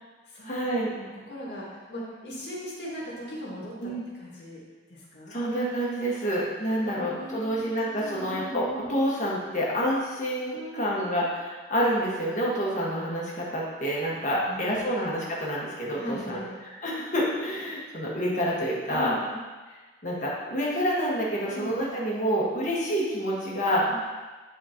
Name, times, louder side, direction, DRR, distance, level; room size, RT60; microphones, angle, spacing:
voice 1, 0.4-0.9 3.8-4.0 5.3-16.4 16.8-19.1 20.0-23.8, equal, 40° left, -5 dB, 1.5 m, -28 dB
voice 2, 1.0-4.6 4.9-5.4 6.6-8.9 10.5-11.1 14.3-15.0 15.9-16.6 18.9-19.4 21.5-21.9 23.9-24.0, equal, 65° left, -5 dB, 2.0 m, -39 dB
10.0 x 4.4 x 2.9 m, 1.3 s
head